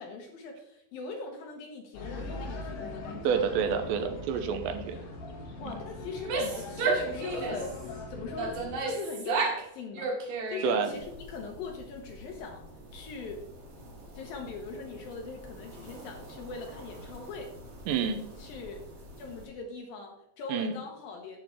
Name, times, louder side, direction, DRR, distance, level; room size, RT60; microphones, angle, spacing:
voice 1, 0.0-3.2 5.6-10.1 10.5-12.7 12.9-13.5 14.1-17.5 18.4-18.8 19.2-21.4, left 4 dB, 70° left, 2 dB, 2.3 m, -41 dB
sound 1, 1.9-8.8, left 2 dB, 50° left, 2.5 m, -40 dB
voice 2, 3.2-5.0 5.7-5.8 10.6-10.9 17.9-18.2 20.5-20.7, right 6 dB, 85° right, 8 dB, 3.0 m, -28 dB
Female speech woman speaking / Yell, 6.1-7.8 8.4-9.7 9.9-10.9, right 4 dB, 60° right, 3.1 m, -31 dB
sound 2, 10.9-19.5, equal, 45° right, 2.3 m, -48 dB
8.8 x 7.5 x 4.5 m, 0.81 s
omnidirectional pair, 5.1 m